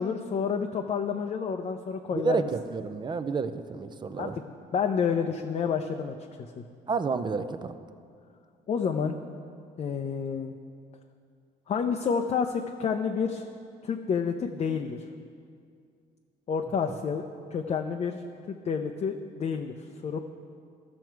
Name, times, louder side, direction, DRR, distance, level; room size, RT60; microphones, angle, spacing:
voice 1, 0.0-2.5 4.1-6.2 6.6-6.7 8.7-9.1 9.8-10.5 11.7-13.5 13.8-15.0 16.5-17.2 17.5-18.2 18.5-19.7 20.0-20.2, left 6 dB, 40° left, 4 dB, 0.5 m, -29 dB
voice 2, 2.1-4.4 6.9-7.7, right 5 dB, 25° right, 11 dB, 0.5 m, -30 dB
15.0 x 6.1 x 4.6 m, 2.3 s
cardioid pair, 110°, 17 cm